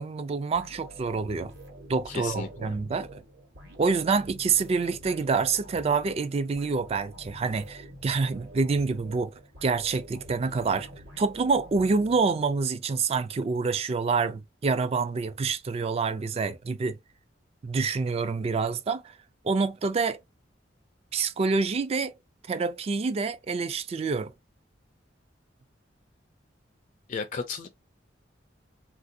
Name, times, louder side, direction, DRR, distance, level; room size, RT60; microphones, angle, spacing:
voice 1, 0.0-1.5 1.9-3.2 3.8-9.3 9.6-10.9 11.2-17.0 17.6-19.1 19.4-20.2 21.1-22.1 22.5-24.3, right 4 dB, 35° right, 0.3 m, -27 dB
sound 1, 0.5-12.7, equal, 65° right, 1.1 m, -47 dB
voice 2, 2.1-2.7 27.1-27.7, left 5 dB, 40° left, 0.4 m, -34 dB
3.1 x 2.5 x 2.6 m
head